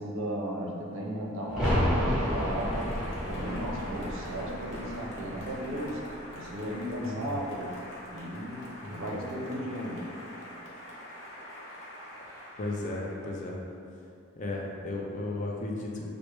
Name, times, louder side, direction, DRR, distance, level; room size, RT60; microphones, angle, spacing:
voice 1, 0.0-3.0 3.3-7.8 8.1-10.1, equal, 65° right, -1 dB, 0.5 m, -35 dB
sound 1, 1.5-7.0 7.3-7.4, equal, 5° right, 0.9 m, -32 dB
Applause, 2.2-13.7, equal, 55° left, 0.8 m, -46 dB
voice 2, 7.0-7.4 8.8-9.2 12.6-13.6 14.4-16.1, left 2 dB, 35° left, -2 dB, 0.4 m, -35 dB
4.5 x 2.0 x 3.1 m, 2.5 s
head